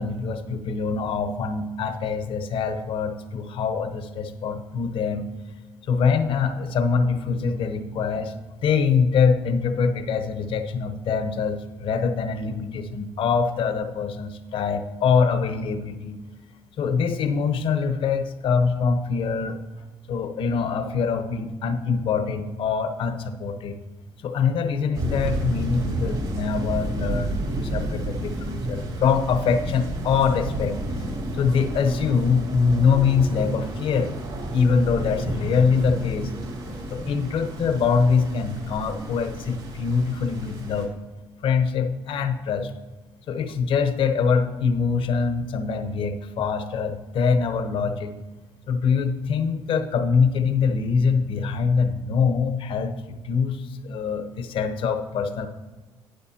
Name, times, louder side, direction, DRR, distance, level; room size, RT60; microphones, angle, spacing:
voice 1, 0.0-5.3 5.9-8.3 8.6-16.2 16.8-19.6 20.1-23.8 24.2-30.8 31.3-34.1 34.5-36.3 36.7-40.9 41.4-42.7 43.3-48.2 48.7-52.9 53.2-55.5, left 5 dB, 65° left, 8 dB, 0.9 m, -24 dB
sound 1, 24.9-40.9, right 1 dB, 65° right, 3.0 m, -31 dB
11.5 x 9.6 x 2.8 m, 1.3 s
supercardioid pair, 70°, 10 cm